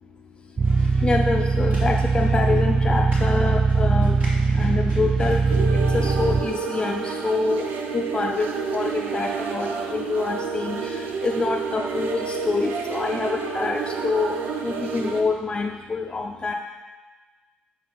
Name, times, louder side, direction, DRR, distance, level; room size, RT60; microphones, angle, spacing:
sound 1, 0.6-6.4, right 4 dB, 30° right, 0.5 m, -21 dB
sound 2, 0.6-5.6, right 2 dB, 55° right, 2.7 m, -41 dB
voice 1, 1.0-4.2 4.6-5.4 5.9-7.7 7.9-14.3 14.6-16.5, left 3 dB, 25° left, 2 dB, 0.5 m, -26 dB
sound 3, 5.5-15.2, right 5 dB, 85° right, 0.9 m, -29 dB
8.3 x 7.0 x 5.6 m, 1.3 s
cardioid pair, 120°, 3 cm